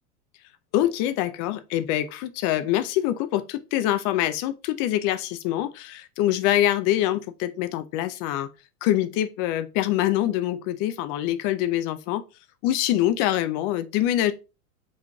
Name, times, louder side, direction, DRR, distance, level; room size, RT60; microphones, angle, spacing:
voice 1, 0.7-8.5 8.8-12.2 12.6-14.3, left 13 dB, 45° left, 0.5 m, -25 dB
5.0 x 3.7 x 2.3 m
hypercardioid pair, 100°, 46 cm